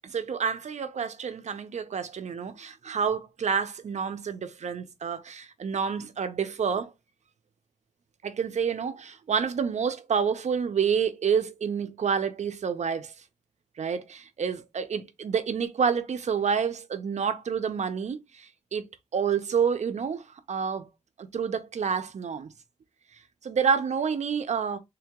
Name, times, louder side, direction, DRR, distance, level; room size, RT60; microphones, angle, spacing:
voice 1, 0.0-6.9 8.2-13.1 13.8-18.9 19.1-20.9 21.2-22.5 23.4-24.8, right 6 dB, 85° right, 0.6 m, -28 dB
3.4 x 2.8 x 3.5 m
wide cardioid pair, 105°, 12 cm